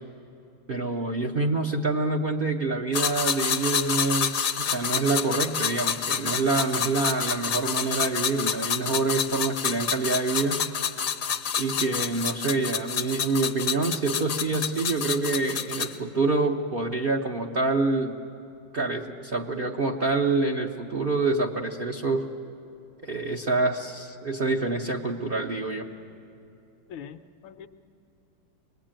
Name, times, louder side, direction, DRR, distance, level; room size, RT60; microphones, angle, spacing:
voice 1, 0.7-10.6 11.6-18.2 18.7-22.3 23.0-25.9, right 3 dB, 50° right, 0 dB, 0.6 m, -26 dB
sound 1, 2.9-16.0, left 7 dB, 55° left, 1.0 m, -28 dB
voice 2, 26.9-27.7, left 8 dB, 75° left, 9 dB, 1.5 m, -42 dB
24.0 x 20.5 x 8.9 m, 2.7 s
omnidirectional pair, 2.3 m